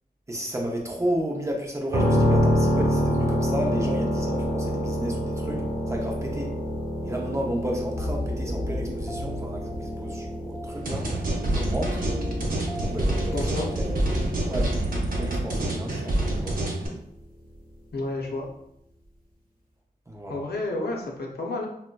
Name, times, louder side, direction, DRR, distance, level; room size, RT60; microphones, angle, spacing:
voice 1, 0.3-6.5 7.0-11.1 11.5-12.0 12.8-13.9 14.4-14.8 15.2-16.5 20.1-20.4, equal, 20° right, 0 dB, 0.6 m, -32 dB
sound 1, 1.9-15.7, equal, 35° right, 1.0 m, -27 dB
sound 2, 7.9-14.2, left 1 dB, 5° left, 0.9 m, -35 dB
sound 3, 10.9-16.9, right 1 dB, 60° right, 0.7 m, -27 dB
voice 2, 13.3-13.7 17.9-18.4 20.3-21.7, left 2 dB, 80° left, -1 dB, 0.6 m, -30 dB
3.7 x 2.1 x 2.2 m, 0.76 s
wide cardioid pair, 95°, 16 cm